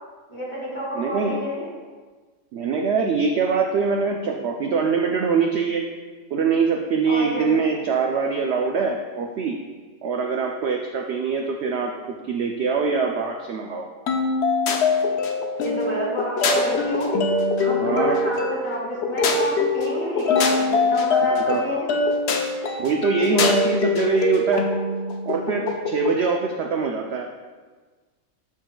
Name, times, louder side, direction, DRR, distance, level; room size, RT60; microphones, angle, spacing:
voice 1, 0.3-1.7 7.1-7.5 15.6-21.9, equal, 20° left, -6 dB, 2.2 m, -29 dB
voice 2, 0.9-1.4 2.5-5.8 6.3-9.6 10.0-13.9 17.8-18.2 21.3-21.6 22.8-24.7 25.3-27.3, right 5 dB, 65° right, 2 dB, 0.7 m, -23 dB
sound 1, 14.1-26.2, left 3 dB, 60° left, 0.8 m, -23 dB
13.0 x 4.6 x 2.3 m, 1.4 s
omnidirectional pair, 1.5 m